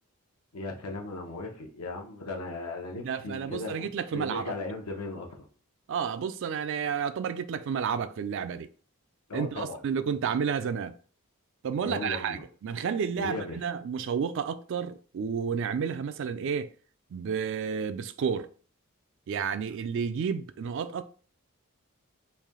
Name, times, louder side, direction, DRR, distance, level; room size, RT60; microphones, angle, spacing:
voice 1, 0.5-5.5 9.3-9.8 11.8-12.4 13.2-13.6, left 2 dB, 85° left, 0.8 m, -37 dB
voice 2, 3.0-4.4 5.9-8.7 9.3-10.9 11.6-16.7 17.1-18.5 19.3-21.0, right 6 dB, 60° right, 0.3 m, -31 dB
3.3 x 2.6 x 3.6 m
head